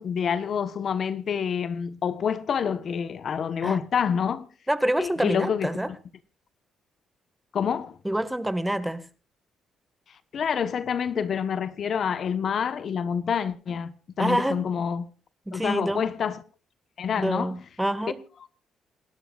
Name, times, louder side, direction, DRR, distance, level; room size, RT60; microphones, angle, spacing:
voice 1, 0.0-4.5 5.0-5.8 7.5-8.0 10.3-15.1 15.5-16.4 17.0-17.6 18.4-18.5, left 7 dB, 55° left, 1.2 m, -27 dB
voice 2, 4.7-5.9 8.0-9.0 14.2-14.6 15.5-16.0 17.2-18.2, right 1 dB, 5° right, 1.8 m, -26 dB
28.0 x 12.5 x 2.5 m
cardioid pair, 90°, 0 cm